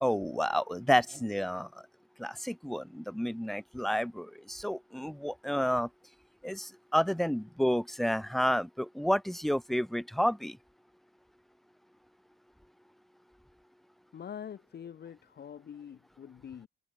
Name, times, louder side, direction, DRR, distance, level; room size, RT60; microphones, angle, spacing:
voice 1, 0.0-1.8 2.2-5.9 6.4-10.6, equal, ahead, 0.8 m, -30 dB
voice 2, 14.1-16.7, left 8 dB, 55° left, 4.1 m, -45 dB
cardioid pair, 90°, 20 cm